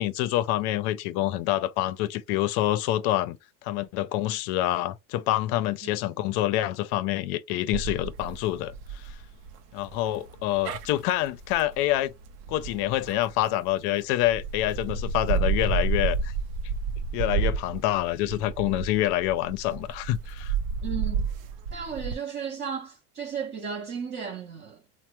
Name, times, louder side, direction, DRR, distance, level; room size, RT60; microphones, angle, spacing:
voice 1, 0.0-3.4 3.6-9.1 9.7-12.1 12.5-16.3 17.1-20.5, left 14 dB, 60° left, 0.5 m, -27 dB
sound 1, 7.7-13.7 14.2-22.2, right 5 dB, 80° right, 0.7 m, -31 dB
voice 2, 20.8-21.2 21.7-24.8, right 6 dB, 25° right, 0.4 m, -34 dB
3.3 x 2.1 x 2.9 m
supercardioid pair, 130°, 46 cm